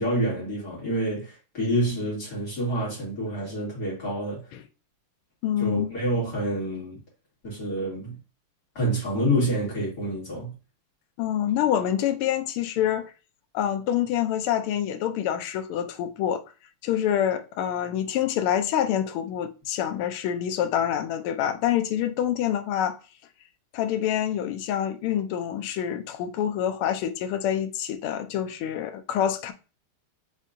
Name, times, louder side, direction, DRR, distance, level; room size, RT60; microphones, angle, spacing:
voice 1, 0.0-4.4 5.6-7.0 7.4-8.2 8.7-10.5, right 1 dB, 45° left, 3.2 m, -27 dB
voice 2, 5.4-5.9 11.2-13.1 13.5-16.4 16.8-23.0 23.7-29.5, left 10 dB, 85° left, 1.5 m, -26 dB
5.6 x 3.6 x 2.6 m
omnidirectional pair, 2.4 m